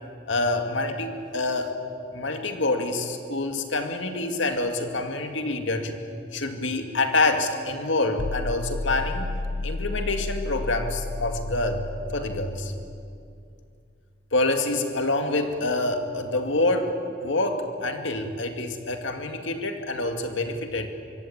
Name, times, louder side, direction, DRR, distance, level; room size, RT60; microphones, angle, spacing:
voice 1, 0.3-1.8 2.1-5.9 6.3-9.3 9.6-11.9 12.1-12.7 14.3-16.9 17.2-20.9, left 2 dB, 85° left, 5 dB, 2.3 m, -26 dB
sound 1, 8.2-13.2, left 2 dB, 60° left, 0.6 m, -32 dB
25.0 x 24.0 x 8.8 m, 2.4 s
head